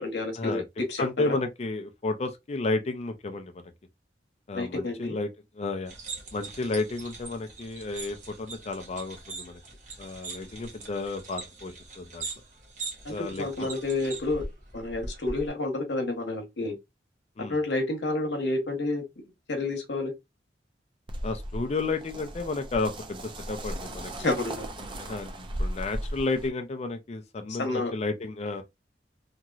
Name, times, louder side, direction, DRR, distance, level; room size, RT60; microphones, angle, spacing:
voice 1, 0.0-1.4 4.5-5.2 13.0-14.5 14.7-16.8 17.4-19.0 19.5-20.1 24.2-24.7 27.6-27.9, left 2 dB, 75° left, 1.0 m, -30 dB
voice 2, 1.0-3.6 4.5-5.3 5.6-5.9 6.3-9.6 10.0-12.3 13.1-13.5 17.4-17.6 21.2-24.3 24.8-28.6, left 3 dB, 35° left, 0.4 m, -32 dB
sound 1, 5.9-15.5, right 3 dB, 45° right, 1.0 m, -41 dB
sound 2, 21.1-26.5, right 1 dB, 30° right, 0.5 m, -36 dB
2.9 x 2.7 x 2.3 m
head